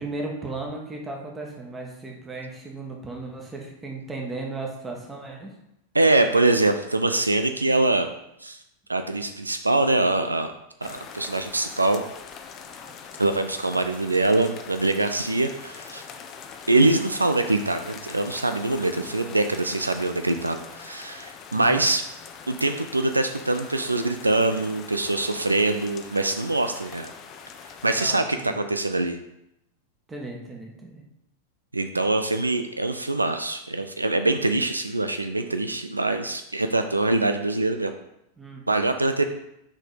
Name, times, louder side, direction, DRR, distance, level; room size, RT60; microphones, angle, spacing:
voice 1, 0.0-5.5 12.7-13.0 21.5-21.8 27.9-28.5 30.1-31.0 38.4-38.6, right 3 dB, 15° right, 0 dB, 1.6 m, -36 dB
voice 2, 5.9-8.1 8.4-8.6 8.9-10.5 10.8-12.0 13.2-16.1 16.7-22.0 22.5-27.1 27.8-29.2 31.7-37.9 38.7-39.2, right 2 dB, 80° right, 7 dB, 0.4 m, -23 dB
sound 1, 10.8-28.0, left 6 dB, 35° left, 0.7 m, -43 dB
6.1 x 4.3 x 5.1 m, 0.83 s
figure-of-eight pair, 90°, 0 cm